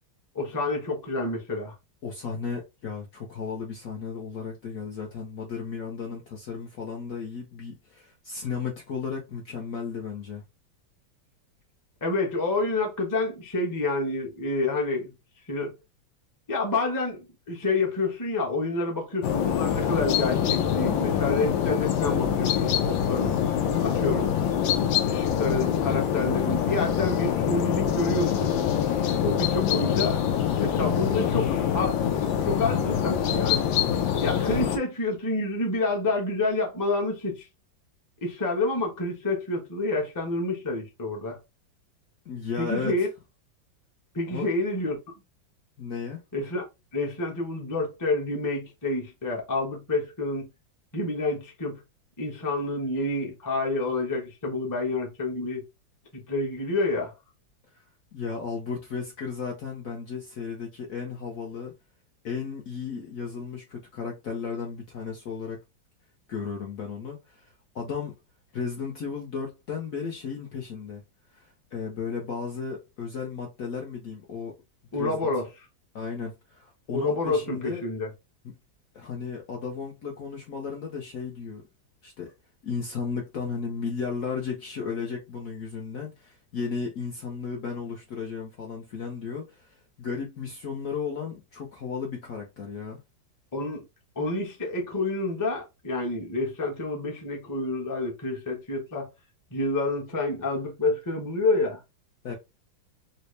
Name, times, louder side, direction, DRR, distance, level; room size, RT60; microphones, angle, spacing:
voice 1, 0.3-1.7 12.0-15.1 15.5-15.8 16.5-23.4 23.8-24.3 25.1-28.5 29.2-30.2 30.6-33.7 34.2-37.5 38.2-41.4 42.6-43.1 44.1-45.0 46.3-46.6 46.9-50.5 50.9-51.8 52.2-55.6 56.1-57.1 74.9-75.5 76.9-78.1 93.5-93.8 94.2-99.1 99.5-101.8, left 2 dB, 20° left, 0.6 m, -28 dB
voice 2, 2.0-10.4 42.3-43.0 44.3-44.5 45.8-46.2 58.1-61.7 62.2-65.6 66.3-68.2 68.5-71.0 71.3-74.5 74.9-75.2 75.9-77.8 78.9-81.6 82.0-82.3 82.6-93.0 102.2-102.3, left 5 dB, 60° left, 0.9 m, -34 dB
sound 1, 19.2-34.8, left 9 dB, 90° left, 1.4 m, -25 dB
4.1 x 2.1 x 3.1 m
omnidirectional pair, 2.1 m